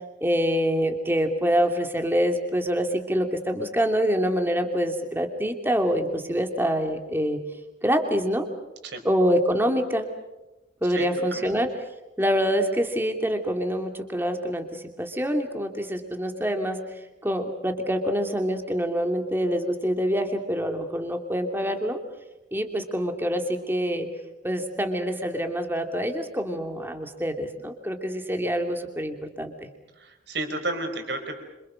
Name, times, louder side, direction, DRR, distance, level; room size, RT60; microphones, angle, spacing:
voice 1, 0.2-7.4 7.8-8.5 9.0-10.1 10.8-11.7 12.2-16.8 17.2-22.0 22.5-24.1 24.4-29.7, equal, 10° right, 5 dB, 2.7 m, -26 dB
voice 2, 10.9-11.5 29.9-31.4, right 2 dB, 60° right, 5 dB, 5.0 m, -32 dB
27.0 x 26.5 x 6.4 m, 0.98 s
head